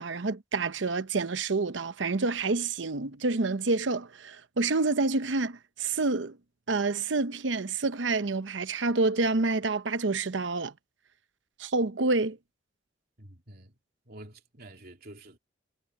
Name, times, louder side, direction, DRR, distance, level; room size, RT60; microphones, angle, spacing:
voice 1, 0.0-6.4 6.7-10.7 11.6-12.4, right 3 dB, 80° right, 0.9 m, -28 dB
voice 2, 13.2-13.8 14.0-15.4, right 1 dB, 55° right, 3.2 m, -48 dB
head